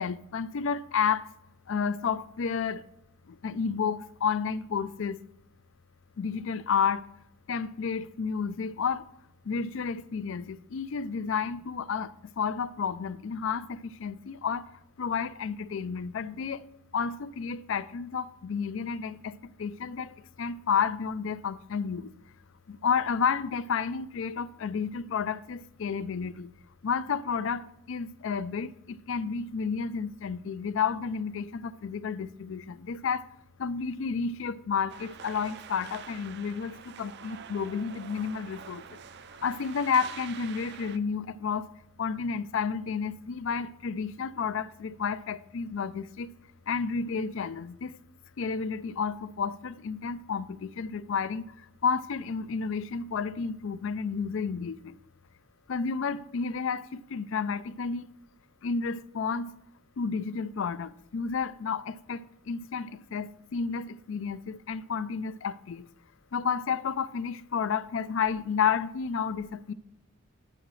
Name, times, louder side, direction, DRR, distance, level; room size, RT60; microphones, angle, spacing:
voice 1, 0.0-1.3 1.7-2.8 3.3-5.2 6.2-7.1 7.5-9.1 9.4-16.6 16.9-22.1 22.7-26.5 26.8-33.3 33.6-39.0 39.4-41.7 42.0-46.3 46.7-48.0 48.4-55.0 55.7-58.1 58.6-59.5 60.0-65.9 66.3-69.7, left 6 dB, 60° left, 0.4 m, -31 dB
sound 1, 34.9-41.0, right 7 dB, 50° right, 0.4 m, -46 dB
11.5 x 10.0 x 3.2 m
head